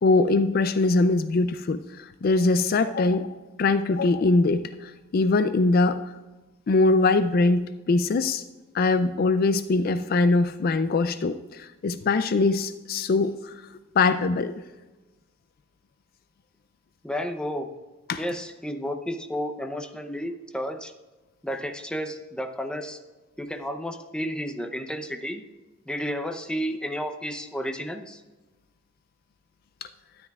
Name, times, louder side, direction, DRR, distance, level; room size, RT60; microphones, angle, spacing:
voice 1, 0.0-6.0 6.7-8.4 8.7-13.5 14.0-14.5 18.1-18.2, left 3 dB, 45° left, 12 dB, 0.3 m, -22 dB
voice 2, 17.0-17.7 18.2-20.9 21.4-23.0 23.4-25.4 25.9-28.2, equal, 5° left, 6 dB, 0.6 m, -32 dB
12.5 x 10.5 x 2.3 m, 1.2 s
head